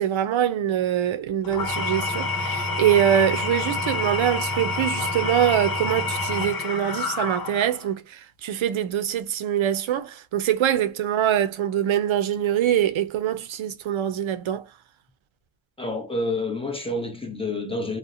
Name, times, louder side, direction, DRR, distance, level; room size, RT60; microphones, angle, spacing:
voice 1, 0.0-14.6, right 10 dB, 70° right, 0.5 m, -24 dB
Engine / Tools, 1.4-7.9, left 3 dB, 45° left, 0.7 m, -28 dB
voice 2, 15.8-18.0, left 2 dB, 10° left, 0.7 m, -28 dB
2.6 x 2.1 x 2.4 m
cardioid pair, 65°, 50 cm